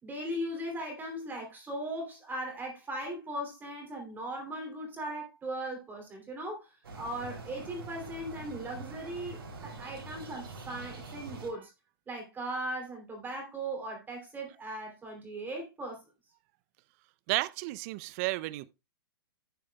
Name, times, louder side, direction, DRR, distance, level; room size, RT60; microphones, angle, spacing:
voice 1, 0.0-6.7 7.0-11.7 12.1-16.0, right 1 dB, 15° right, 3.0 m, -38 dB
sound 1, 6.8-11.5, right 3 dB, 75° right, 3.3 m, -44 dB
voice 2, 17.3-18.7, right 20 dB, 40° right, 0.5 m, -32 dB
11.5 x 9.2 x 2.3 m
hypercardioid pair, 115°, 12 cm